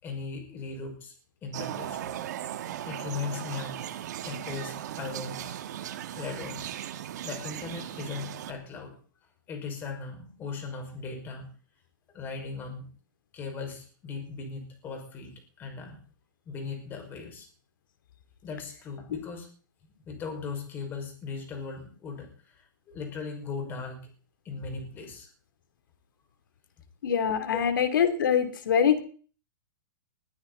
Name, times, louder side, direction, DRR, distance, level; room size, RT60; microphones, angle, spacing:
voice 1, 0.0-1.1 1.4-2.1 2.9-3.8 4.2-6.7 7.2-8.9 9.5-11.5 12.1-12.9 13.3-15.3 15.6-16.0 16.5-17.5 18.4-19.5 20.1-24.1 24.4-25.3 27.5-27.7, left 5 dB, 20° left, 3 dB, 5.5 m, -38 dB
sound 1, 1.5-8.5, right 11 dB, 55° right, 1.7 m, -37 dB
voice 2, 27.0-29.0, left 8 dB, 75° left, 9 dB, 3.2 m, -24 dB
21.0 x 15.0 x 4.1 m, 0.43 s
hypercardioid pair, 160°, 11 cm